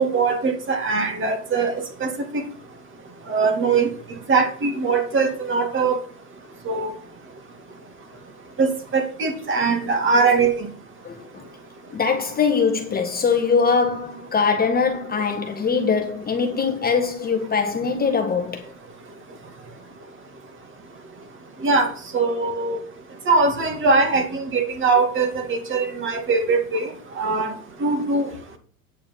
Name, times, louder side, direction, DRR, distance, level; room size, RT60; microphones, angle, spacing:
voice 1, 0.0-1.7 2.0-2.4 3.3-3.9 4.3-6.0 6.7-6.9 8.6-10.7 21.6-21.9 22.1-22.8 23.3-26.9 27.2-27.5 27.8-28.3, right 4 dB, 25° right, 2.6 m, -21 dB
voice 2, 11.0-11.4 11.9-18.7, left 5 dB, 20° left, 1.4 m, -22 dB
9.0 x 6.7 x 5.5 m
hypercardioid pair, 105°, 44 cm